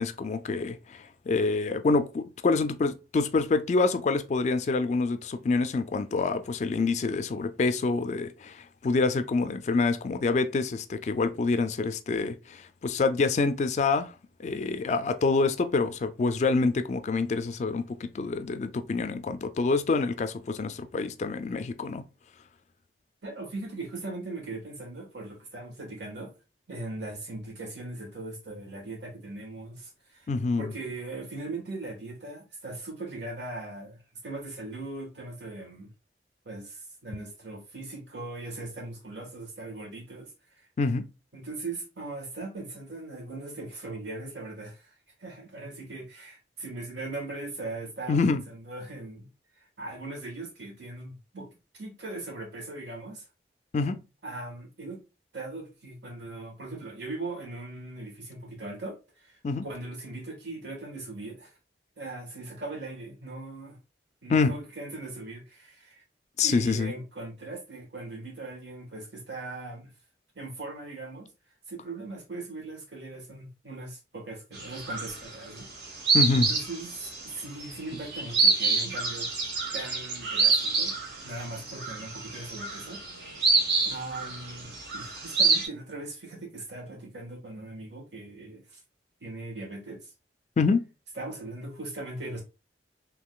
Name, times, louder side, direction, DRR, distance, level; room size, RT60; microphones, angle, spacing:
voice 1, 0.0-14.1 14.4-22.0 30.3-30.7 40.8-41.1 48.1-48.4 53.7-54.0 59.4-59.7 64.3-64.5 66.4-66.9 76.1-76.5 90.6-90.8, left 4 dB, 40° left, 0.3 m, -26 dB
voice 2, 23.2-26.3 26.7-30.3 30.6-35.9 36.4-40.7 41.3-44.9 45.2-49.3 49.6-53.3 54.2-55.0 55.3-61.6 62.0-63.8 64.2-66.0 66.4-69.9 70.3-71.3 71.7-76.0 76.3-79.4 79.7-81.0 81.2-83.0 83.8-88.8 89.2-90.1 91.2-92.4, right 2 dB, 85° right, 1.4 m, -39 dB
sound 1, 74.5-75.4 75.7-85.7, right 4 dB, 70° right, 1.1 m, -27 dB
3.7 x 2.9 x 2.3 m
head